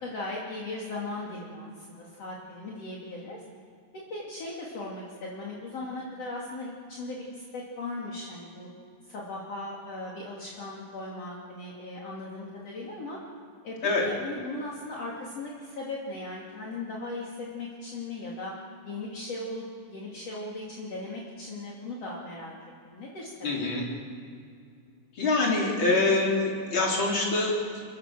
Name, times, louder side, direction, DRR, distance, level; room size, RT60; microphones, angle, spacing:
voice 1, 0.0-3.4 3.9-8.7 9.1-13.2 13.6-13.8 14.0-18.5 18.9-22.5 22.9-23.6, left 2 dB, 55° left, -4 dB, 3.8 m, -38 dB
voice 2, 23.4-23.8 25.1-27.8, left 2 dB, 40° left, -2 dB, 4.6 m, -25 dB
30.0 x 14.0 x 7.6 m, 2.3 s
omnidirectional pair, 3.4 m